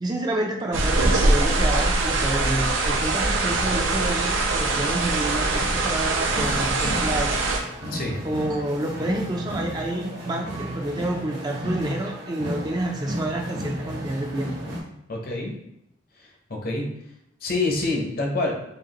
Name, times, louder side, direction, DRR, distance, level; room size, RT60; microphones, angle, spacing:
voice 1, 0.0-7.4 8.2-14.7, right 1 dB, 20° right, 1 dB, 0.4 m, -29 dB
sound 1, 0.7-7.6, right 2 dB, 80° right, 0.6 m, -22 dB
sound 2, 6.3-14.8, equal, 60° right, 1.1 m, -33 dB
voice 2, 15.1-15.5 16.2-16.9 17.4-18.5, left 2 dB, 50° left, 1 dB, 0.8 m, -27 dB
4.9 x 2.5 x 2.9 m, 0.79 s
head